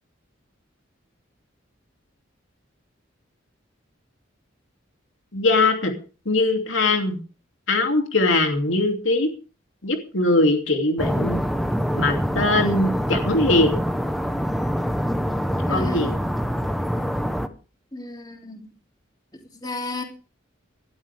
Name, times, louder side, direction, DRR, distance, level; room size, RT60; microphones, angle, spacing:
voice 1, 5.3-5.9 6.3-7.2 7.7-9.3 9.8-11.4 11.9-13.8 15.7-16.1, left 2 dB, 80° left, 4 dB, 2.8 m, -21 dB
sound 1, 11.0-17.5, equal, ahead, 1.1 m, -25 dB
voice 2, 15.7-16.1 17.9-18.7 19.5-20.0, left 3 dB, 20° left, 2 dB, 3.3 m, -33 dB
18.5 x 13.0 x 3.6 m, 0.36 s
head